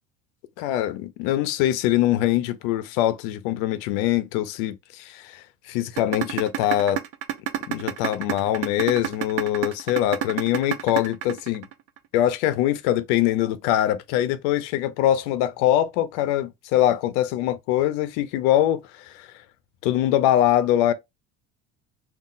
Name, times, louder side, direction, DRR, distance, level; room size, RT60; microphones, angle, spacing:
voice 1, 0.6-7.0 7.7-11.7 12.1-19.3 19.8-20.9, left 12 dB, 90° left, 0.6 m, -23 dB
sound 1, 6.0-12.0, right 11 dB, 50° right, 0.5 m, -27 dB
2.4 x 2.1 x 3.8 m
cardioid pair, 170°, 34 cm